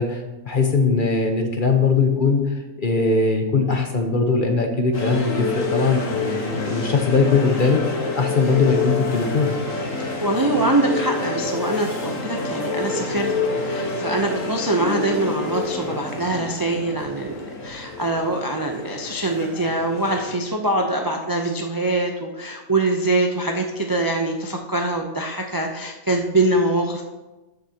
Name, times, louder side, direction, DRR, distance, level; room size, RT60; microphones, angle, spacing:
voice 1, 0.0-9.6, left 4 dB, 40° left, 4 dB, 0.9 m, -20 dB
sound 1, 4.9-20.4, left 3 dB, 65° left, 1.7 m, -28 dB
voice 2, 10.0-13.3 13.6-27.0, right 2 dB, 30° right, 2 dB, 0.3 m, -23 dB
13.0 x 6.5 x 2.9 m, 1.1 s
omnidirectional pair, 1.5 m